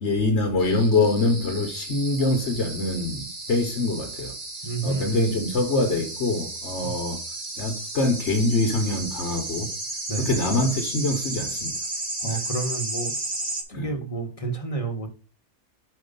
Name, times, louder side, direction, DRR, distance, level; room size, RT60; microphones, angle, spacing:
voice 1, 0.0-4.3 4.8-7.2 7.6-9.7 10.2-11.8 12.2-12.4 13.7-13.9, left 2 dB, 55° left, 1.3 m, -24 dB
sound 1, 0.6-13.6, right 2 dB, 35° right, 1.6 m, -34 dB
voice 2, 4.6-5.3 6.8-6.9 10.1-10.3 12.2-13.1 13.7-15.1, right 3 dB, 25° left, 1.2 m, -30 dB
5.5 x 5.2 x 5.2 m
omnidirectional pair, 1.5 m